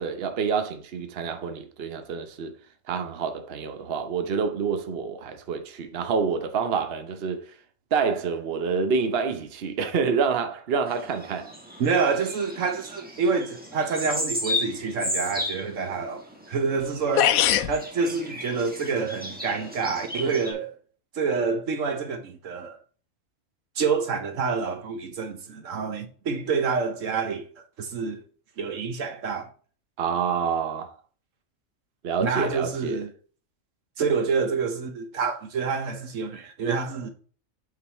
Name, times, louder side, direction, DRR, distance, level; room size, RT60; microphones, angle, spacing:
voice 1, 0.0-2.6 2.9-7.5 7.9-11.5 30.0-30.9 32.0-33.0, right 5 dB, 50° right, 1.0 m, -27 dB
sound 1, 10.9-20.5, left 1 dB, 5° right, 1.4 m, -35 dB
voice 2, 11.8-17.3 17.7-20.7 21.1-22.8 23.8-27.5 27.8-28.2 28.6-29.5 32.2-33.1 34.0-37.1, right 5 dB, 70° right, 1.2 m, -27 dB
sound 2, 16.8-16.9 17.2-17.8, left 11 dB, 85° left, 1.0 m, -20 dB
8.1 x 4.0 x 4.2 m
omnidirectional pair, 1.4 m